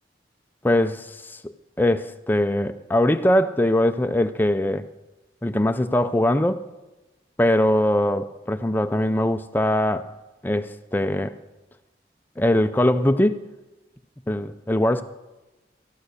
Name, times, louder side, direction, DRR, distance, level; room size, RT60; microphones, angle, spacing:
voice 1, 0.6-4.8 5.4-6.7 7.4-10.1 10.4-11.3 12.4-13.4 14.3-15.0, left 1 dB, 10° left, 0.4 m, -22 dB
14.0 x 10.5 x 6.5 m
head